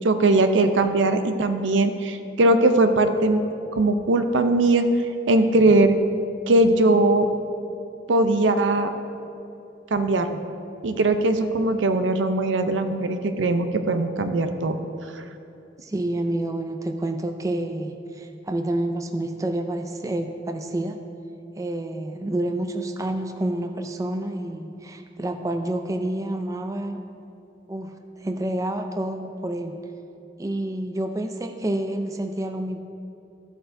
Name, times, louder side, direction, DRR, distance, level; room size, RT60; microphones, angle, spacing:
voice 1, 0.0-3.4 3.7-4.9 5.3-6.0 6.5-7.3 8.1-8.9 9.9-10.4 10.8-14.8, right 2 dB, 90° right, 8 dB, 0.6 m, -20 dB
voice 2, 15.8-21.0 21.6-27.0 27.7-27.9 28.2-29.8 30.4-32.8, right 1 dB, 20° right, 5 dB, 0.4 m, -28 dB
13.5 x 7.9 x 2.6 m, 2.8 s
head